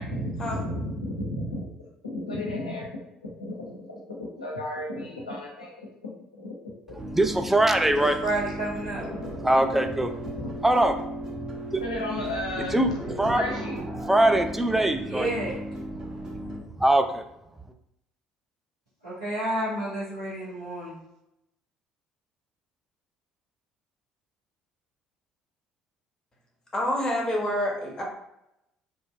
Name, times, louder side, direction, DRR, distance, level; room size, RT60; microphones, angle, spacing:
voice 1, 0.0-1.7 2.0-7.0 7.9-9.3 10.4-10.5 11.8-13.8, left 1 dB, 85° left, -2 dB, 0.6 m, -34 dB
sound 1, 7.0-16.6, right 1 dB, 25° right, 1.0 m, -35 dB
voice 2, 7.1-8.1 9.4-10.1 10.6-10.9 12.7-12.9 13.2-13.4 14.1-15.3 16.8-17.2, right 1 dB, 5° right, 6 dB, 0.3 m, -21 dB
voice 3, 8.0-9.0 15.0-15.6 19.0-21.0, right 1 dB, 85° right, -13 dB, 0.9 m, -30 dB
voice 4, 26.7-28.0, left 1 dB, 20° left, -1 dB, 0.9 m, -27 dB
2.7 x 2.4 x 2.4 m, 0.85 s
figure-of-eight pair, 55°, 3 cm